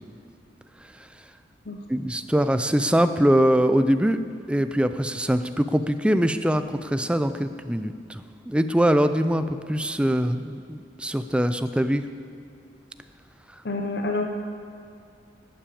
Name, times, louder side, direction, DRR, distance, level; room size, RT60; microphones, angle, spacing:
voice 1, 1.9-4.2 4.5-12.0, equal, 5° right, 10 dB, 0.5 m, -23 dB
voice 2, 13.6-14.3, left 2 dB, 60° left, 3 dB, 0.8 m, -27 dB
12.0 x 8.9 x 8.6 m, 2.5 s
head